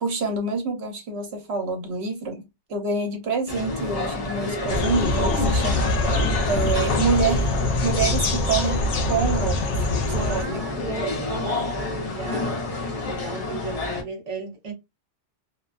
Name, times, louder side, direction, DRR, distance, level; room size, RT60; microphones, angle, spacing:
voice 1, 0.0-2.4 2.7-9.9 10.2-10.6, right 4 dB, 65° right, 1.0 m, -27 dB
sound 1, 3.5-14.0, left 2 dB, 35° left, 0.7 m, -29 dB
sound 2, 4.7-10.4, left 2 dB, 75° left, 0.9 m, -24 dB
voice 2, 10.1-14.7, right 3 dB, 35° right, 0.7 m, -36 dB
2.4 x 2.2 x 2.4 m
omnidirectional pair, 1.2 m